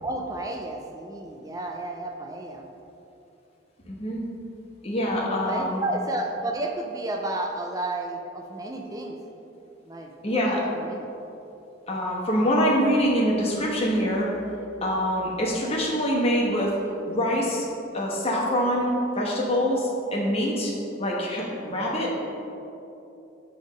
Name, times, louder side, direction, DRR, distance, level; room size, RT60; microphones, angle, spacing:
voice 1, 0.0-2.7 5.3-9.2 9.9-11.1, right 2 dB, 20° right, 2 dB, 0.4 m, -32 dB
voice 2, 3.9-4.3 4.8-5.8 10.2-10.6 11.9-14.3 14.8-16.7 17.0-17.6 17.9-20.7 21.0-22.1, equal, 30° left, -4 dB, 1.2 m, -25 dB
7.6 x 3.5 x 5.1 m, 2.9 s
head